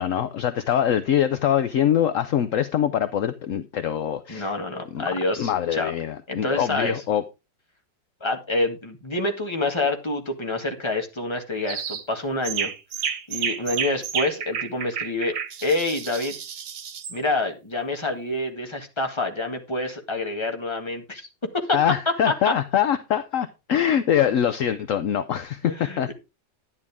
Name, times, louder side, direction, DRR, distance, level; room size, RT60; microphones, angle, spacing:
voice 1, 0.0-4.5 4.9-5.1 5.4-7.2 21.7-26.1, left 9 dB, 60° left, 0.8 m, -23 dB
voice 2, 4.3-5.9 6.3-7.0 8.2-12.7 13.0-16.4 17.1-21.3 21.5-21.8 22.3-22.5 25.6-26.1, left 2 dB, 15° left, 1.7 m, -27 dB
sound 1, 11.7-12.0 12.4-17.2, right 8 dB, 85° right, 1.9 m, -31 dB
11.0 x 9.9 x 3.6 m
omnidirectional pair, 1.9 m